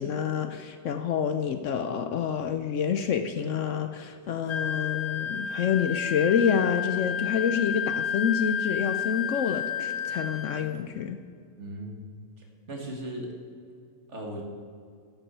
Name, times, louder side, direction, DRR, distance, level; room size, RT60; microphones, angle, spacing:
voice 1, 0.0-11.2, left 7 dB, 65° left, 8 dB, 0.9 m, -28 dB
Wind instrument woodwind instrument, 4.5-10.7, left 8 dB, 90° left, 1.3 m, -31 dB
voice 2, 11.6-12.1 12.4-13.3 14.1-14.4, right 1 dB, 50° right, 1 dB, 2.0 m, -37 dB
10.0 x 7.1 x 7.9 m, 2.3 s
omnidirectional pair, 1.5 m